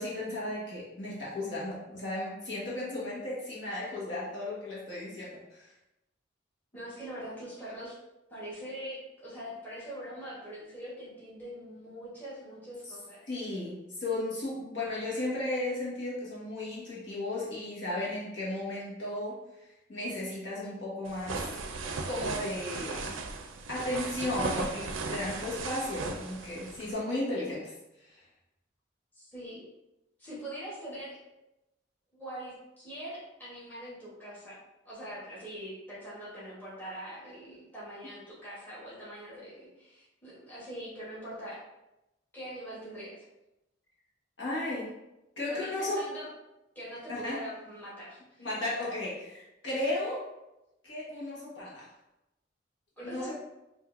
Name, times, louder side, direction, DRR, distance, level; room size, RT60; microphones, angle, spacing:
voice 1, 0.0-5.7 13.2-21.5 22.1-23.2 23.7-27.7 28.1-28.2 44.4-44.9 45.4-46.1 47.1-47.4 48.4-50.3 50.8-51.9 53.0-53.3, left 1 dB, 70° left, -6 dB, 1.3 m, -35 dB
voice 2, 6.7-8.0 8.3-13.2 29.1-29.6 30.2-31.2 32.1-34.6 34.8-41.6 42.3-43.2 45.5-46.3 46.7-48.5 53.0-53.3, equal, 10° left, -9 dB, 1.1 m, -43 dB
sound 1, 21.1-26.9, right 3 dB, 85° right, 0.5 m, -37 dB
5.1 x 2.6 x 2.5 m, 0.93 s
head